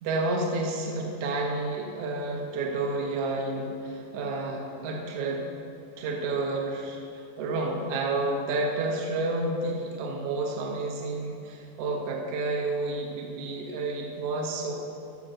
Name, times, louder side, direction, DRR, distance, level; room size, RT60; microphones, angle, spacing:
voice 1, 0.0-5.5 6.0-14.7, right 2 dB, 65° right, 0 dB, 1.6 m, -30 dB
13.0 x 4.5 x 6.5 m, 2.6 s
omnidirectional pair, 4.3 m